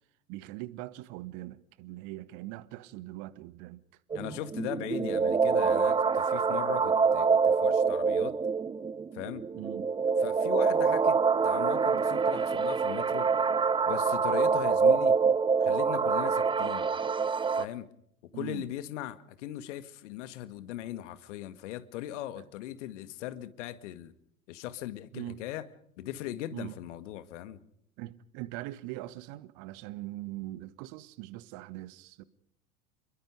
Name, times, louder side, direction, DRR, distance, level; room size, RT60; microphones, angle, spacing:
voice 1, 0.3-3.8 9.5-9.8 18.3-18.6 22.4-22.5 25.1-25.4 26.5-26.7 28.0-32.2, right 17 dB, 45° right, 1.4 m, -41 dB
voice 2, 4.1-8.4 9.1-9.5 10.2-13.3 13.9-15.2 15.6-16.9 17.5-17.9 18.2-24.1 24.5-25.7 26.0-27.6, left 13 dB, 55° left, 1.9 m, -39 dB
sound 1, 4.1-17.6, right 5 dB, 10° right, 0.9 m, -26 dB
29.0 x 22.0 x 5.0 m
figure-of-eight pair, 85°, 43 cm